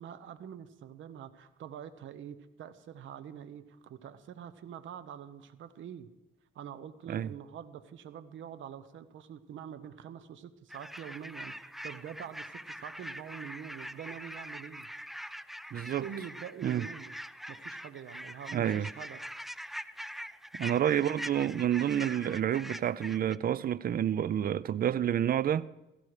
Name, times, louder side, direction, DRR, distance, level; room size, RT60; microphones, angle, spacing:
voice 1, 0.0-6.1 6.5-14.9 16.0-17.1 17.5-19.2 20.9-21.1, right 9 dB, 75° right, 1.1 m, -45 dB
sound 1, 10.7-23.4, equal, ahead, 0.5 m, -43 dB
voice 2, 15.7-16.0 16.6-16.9 18.5-18.9 20.5-25.7, right 10 dB, 50° right, 0.5 m, -29 dB
17.0 x 14.5 x 4.9 m
cardioid pair, 90°, 20 cm